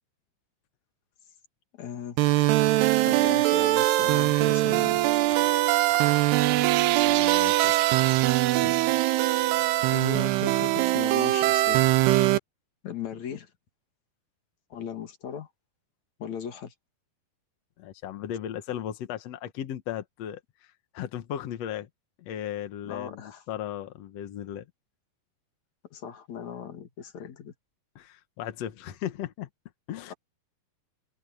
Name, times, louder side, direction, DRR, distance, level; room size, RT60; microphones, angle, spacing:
voice 1, 1.7-2.2 3.0-5.0 9.9-11.9 12.8-13.5 14.7-15.5 16.2-16.7 22.8-23.4 25.9-27.5, left 8 dB, 50° left, 3.1 m, -37 dB
sound 1, 2.2-12.4, right 17 dB, 85° right, 2.9 m, -22 dB
sound 2, 5.3-5.6 5.9-6.6 7.0-7.8 8.1-8.4 8.8-9.1, right 6 dB, 55° right, 5.0 m, -45 dB
voice 2, 7.0-7.8 8.6-8.8 17.8-21.9 22.2-24.6 27.9-29.5 29.9-30.1, left 10 dB, 65° left, 1.6 m, -36 dB
omnidirectional pair, 4.6 m